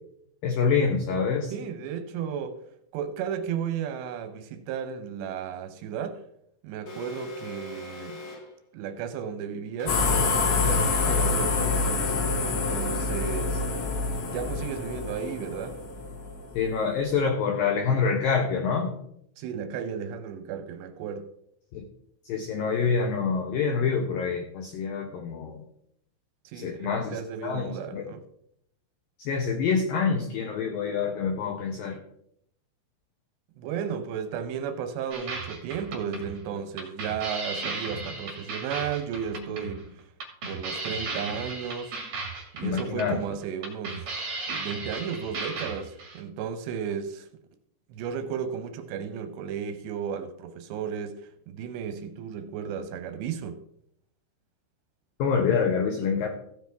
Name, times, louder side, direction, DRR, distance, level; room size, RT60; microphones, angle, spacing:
voice 1, 0.4-1.5 16.5-18.9 21.7-21.9 22.3-25.6 26.5-28.0 29.2-32.0 42.6-43.2 55.2-56.3, left 5 dB, 90° left, 2.0 m, -26 dB
voice 2, 1.5-2.6 2.9-6.2 6.6-8.2 8.7-10.0 10.6-12.2 12.4-13.7 14.3-15.8 19.4-21.3 26.4-28.2 33.6-39.8 40.5-42.0 42.5-44.1 44.5-47.3 47.9-53.6, right 7 dB, 80° right, 2.7 m, -34 dB
Alarm, 6.9-8.6 9.8-11.6, left 2 dB, 50° left, 1.5 m, -41 dB
sound 1, 9.9-16.7, left 4 dB, 70° left, 4.1 m, -26 dB
sound 2, 35.1-46.2, right 3 dB, 50° right, 1.8 m, -36 dB
15.0 x 8.1 x 3.5 m
omnidirectional pair, 5.4 m